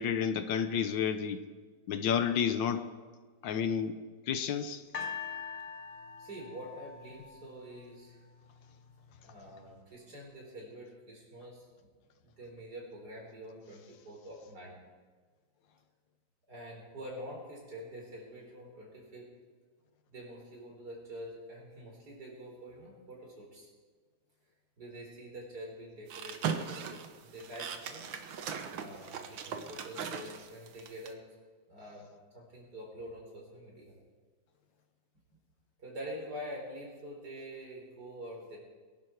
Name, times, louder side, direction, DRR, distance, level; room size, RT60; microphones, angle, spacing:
voice 1, 0.0-1.4 1.9-2.9 3.4-4.0 4.3-4.8, left 7 dB, 75° left, 10 dB, 1.5 m, -30 dB
sound 1, 4.9-8.1 8.9-9.0, left 6 dB, 60° left, 1.8 m, -42 dB
voice 2, 6.2-8.2 9.2-11.9 12.2-14.7 16.5-19.3 20.1-23.7 24.8-28.1 28.7-31.2 31.7-33.9 35.8-38.6, equal, 55° right, -2 dB, 4.9 m, -46 dB
sound 2, 26.1-31.1, right 7 dB, 80° right, 1.8 m, -38 dB
22.5 x 11.0 x 4.6 m, 1.5 s
omnidirectional pair, 2.1 m